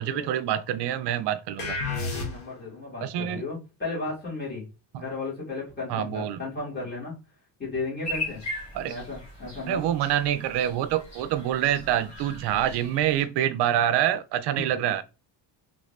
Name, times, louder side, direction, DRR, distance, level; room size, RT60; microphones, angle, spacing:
voice 1, 0.0-1.8 3.0-3.4 4.9-5.0 5.9-6.4 8.7-9.0 9.7-15.0, right 11 dB, 65° right, 0.5 m, -26 dB
sound 1, 1.6-2.7, left 3 dB, 65° left, 1.4 m, -31 dB
voice 2, 1.9-4.7 5.0-7.1 7.6-8.4 8.9-9.9 14.5-14.6, left 3 dB, 25° left, 2.0 m, -34 dB
sound 2, 8.0-13.2, left 1 dB, 40° left, 1.4 m, -39 dB
3.4 x 2.6 x 3.1 m
cardioid pair, 170°, 43 cm